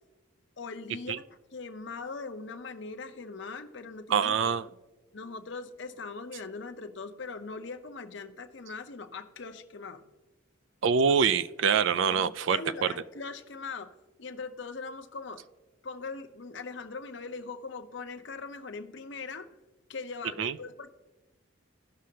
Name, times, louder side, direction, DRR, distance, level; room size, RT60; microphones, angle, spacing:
voice 1, 0.6-4.8 5.1-10.0 12.1-13.9 14.2-15.4 15.8-19.5 19.9-20.9, left 4 dB, 60° left, 8 dB, 0.7 m, -41 dB
voice 2, 4.1-4.6 10.8-12.6 20.4-20.5, right 6 dB, 65° right, 15 dB, 0.4 m, -25 dB
16.5 x 6.2 x 2.8 m, 1.1 s
head